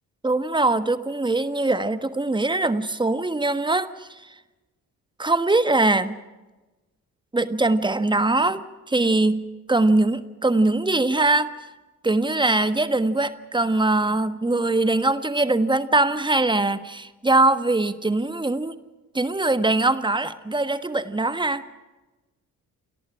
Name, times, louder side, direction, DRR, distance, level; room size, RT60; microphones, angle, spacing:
voice 1, 0.2-4.2 5.2-6.2 7.3-9.4 9.7-11.6 12.0-18.8 19.1-21.7, right 2 dB, 10° right, 12 dB, 1.4 m, -22 dB
29.5 x 22.0 x 5.0 m, 1.1 s
figure-of-eight pair, 40°, 48 cm